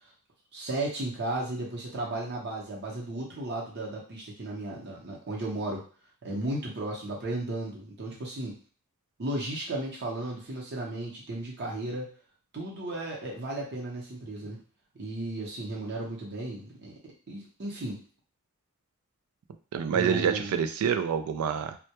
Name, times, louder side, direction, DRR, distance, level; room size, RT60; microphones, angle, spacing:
voice 1, 0.5-5.8 6.2-8.6 9.2-12.1 12.5-14.6 15.0-18.0 19.9-20.5, right 2 dB, 50° right, -3 dB, 0.7 m, -34 dB
voice 2, 19.7-21.8, right 7 dB, 80° right, 12 dB, 0.3 m, -27 dB
2.2 x 2.1 x 2.8 m, 0.39 s
head